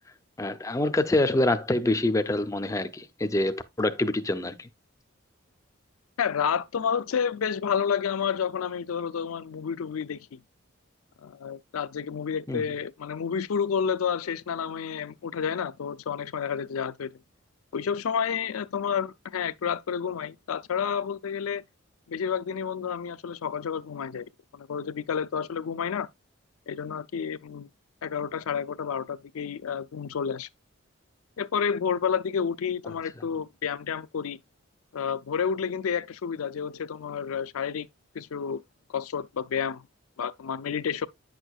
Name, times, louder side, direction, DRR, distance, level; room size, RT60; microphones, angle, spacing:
voice 1, 0.4-4.7 12.5-12.6, left 1 dB, 15° left, 0.4 m, -26 dB
voice 2, 6.2-10.4 11.2-17.1 17.7-21.6 22.1-24.3 24.5-26.1 26.7-27.7 28.0-30.5 31.4-34.4 34.9-37.9 38.1-38.6 38.9-39.8 40.2-41.1, left 7 dB, 90° left, 0.4 m, -30 dB
8.8 x 6.3 x 2.3 m
head